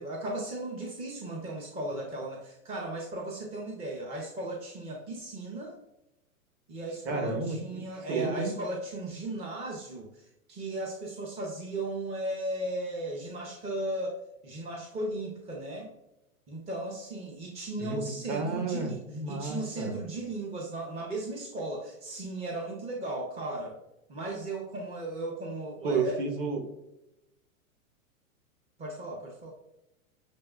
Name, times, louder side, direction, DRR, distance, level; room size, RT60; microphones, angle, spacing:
voice 1, 0.0-5.8 6.7-15.9 16.5-19.0 19.3-23.8 24.1-26.2 28.8-29.5, right 1 dB, 15° right, -1 dB, 0.5 m, -36 dB
voice 2, 7.0-7.8 8.1-8.5 17.8-19.9 25.8-26.6, right 3 dB, 40° right, 3 dB, 1.2 m, -31 dB
6.7 x 3.0 x 2.3 m, 0.88 s
hypercardioid pair, 125°, 41 cm